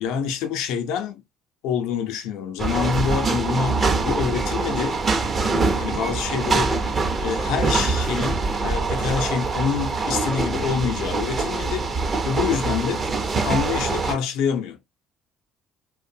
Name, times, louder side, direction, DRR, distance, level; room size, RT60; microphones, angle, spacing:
voice 1, 0.0-1.1 1.6-5.0 5.8-6.7 7.2-8.4 8.6-11.9 12.2-13.1 13.4-14.8, left 7 dB, 80° left, 0.5 m, -26 dB
sound 1, 2.6-14.1, right 3 dB, 35° right, 0.6 m, -24 dB
2.6 x 2.1 x 2.5 m
supercardioid pair, 95°, 0 cm